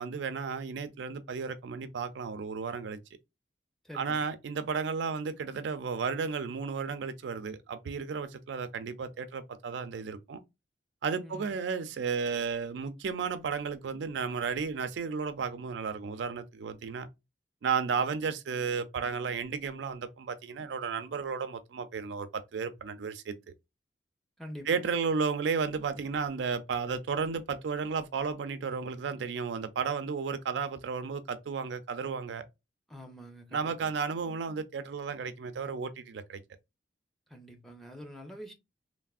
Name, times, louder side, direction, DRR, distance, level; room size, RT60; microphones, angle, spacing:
voice 1, 0.0-3.0 3.9-10.4 11.0-17.1 17.6-23.3 24.7-32.5 33.5-36.4, right 5 dB, 75° right, 0.4 m, -33 dB
voice 2, 3.8-4.3 11.2-11.6 24.4-24.8 32.9-33.7 37.3-38.5, equal, ahead, 0.6 m, -46 dB
3.3 x 2.0 x 2.3 m
head